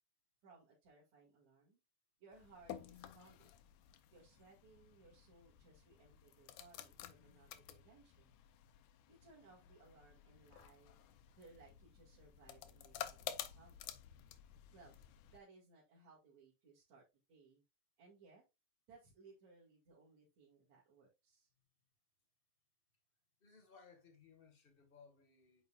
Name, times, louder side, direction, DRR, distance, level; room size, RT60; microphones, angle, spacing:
voice 1, 0.4-1.8 2.2-3.5 4.1-8.3 9.1-11.0 11.3-13.8 14.7-14.9 15.3-17.6 18.0-18.5 18.9-21.5, right 4 dB, 65° right, 3.4 m, -64 dB
sound 1, 2.3-15.4, left 11 dB, 85° left, 2.2 m, -52 dB
voice 2, 23.4-25.7, left 5 dB, 35° left, 0.9 m, -63 dB
9.1 x 5.8 x 2.4 m
omnidirectional pair, 3.5 m